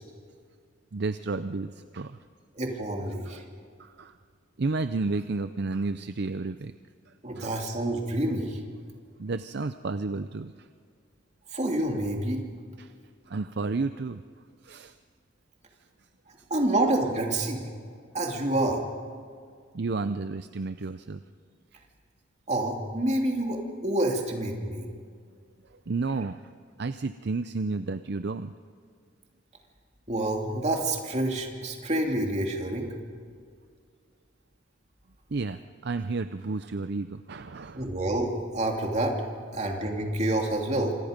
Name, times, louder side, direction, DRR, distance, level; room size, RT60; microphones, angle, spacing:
voice 1, 0.9-2.2 3.8-4.1 4.6-6.7 7.4-7.6 9.2-10.5 12.8-12.9 13.3-14.2 14.6-14.9 19.7-21.2 25.9-26.4 26.8-28.5 35.3-37.9, right 3 dB, 55° right, 11 dB, 0.6 m, -31 dB
voice 2, 2.5-3.4 7.2-8.6 11.5-12.4 16.5-17.6 18.1-18.8 22.5-24.9 30.1-32.9 37.8-39.2 39.5-41.0, right 1 dB, 35° right, 1 dB, 2.8 m, -28 dB
27.0 x 26.0 x 5.2 m, 2.1 s
head